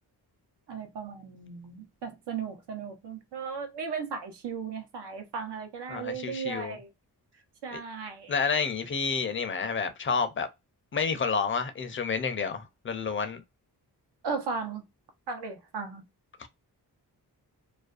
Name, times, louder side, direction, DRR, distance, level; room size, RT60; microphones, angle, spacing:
voice 1, 0.7-6.9 7.6-8.3 14.2-14.8 15.3-16.0, right 5 dB, 90° right, 0.8 m, -36 dB
voice 2, 5.9-6.8 7.7-7.8 8.3-10.5 10.9-13.4 16.4-16.5, left 5 dB, 30° left, 0.4 m, -29 dB
2.4 x 2.2 x 2.4 m
wide cardioid pair, 100°, 40 cm